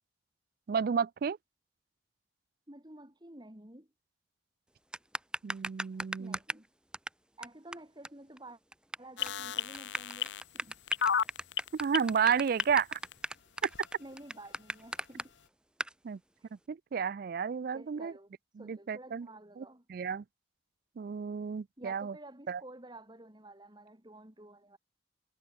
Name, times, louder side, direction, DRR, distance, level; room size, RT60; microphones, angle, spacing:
voice 1, 0.7-1.4 5.4-6.4 11.7-13.0 16.0-16.2 16.7-18.1 18.6-19.3 19.6-19.7 19.9-20.2 21.0-22.1 22.5-22.6, right 6 dB, 55° right, 0.4 m, -31 dB
voice 2, 2.7-3.9 6.2-6.7 7.4-8.6 9.0-10.8 14.0-15.3 16.4-16.5 17.6-18.3 18.6-19.8 21.8-24.8, right 1 dB, 25° right, 2.9 m, -51 dB
sound 1, 4.9-6.7 6.9-7.1 7.4-7.5 7.7-7.8 8.0-8.1 8.4-9.0 9.3-9.4 9.7-15.2 15.8-15.9, right 1 dB, 5° right, 1.6 m, -36 dB
sound 2, 9.2-13.1 13.7-13.8, left 8 dB, 90° left, 0.8 m, -32 dB
head